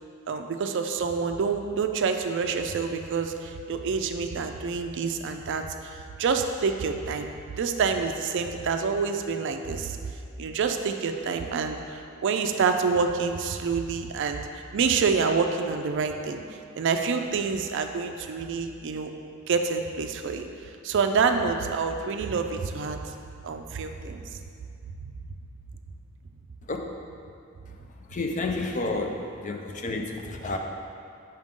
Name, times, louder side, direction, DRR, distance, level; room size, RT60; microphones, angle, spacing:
voice 1, 0.3-7.3 7.6-10.1 10.4-14.4 14.7-16.4 16.8-19.1 19.5-20.5 20.8-23.1 23.4-24.2, right 5 dB, 60° right, 6 dB, 0.4 m, -27 dB
voice 2, 28.1-30.6, left 2 dB, 35° left, 3 dB, 0.5 m, -30 dB
5.7 x 5.2 x 3.6 m, 2.4 s
head